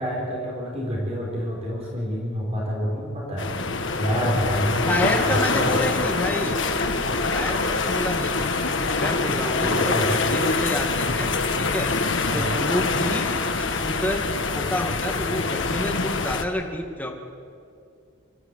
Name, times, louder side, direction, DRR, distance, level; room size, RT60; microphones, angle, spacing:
voice 1, 0.0-5.0 5.2-6.0 9.6-10.2 12.3-12.5, equal, 30° right, -3 dB, 4.4 m, -28 dB
sound 1, 3.4-16.4, left 3 dB, 60° left, 1.5 m, -25 dB
voice 2, 4.9-6.6 7.3-8.3 9.0-11.3 11.6-11.9 12.3-13.3 13.6-14.2 14.5-17.1, left 1 dB, 5° left, 1 dB, 2.1 m, -29 dB
25.5 x 14.0 x 8.3 m, 2.4 s
head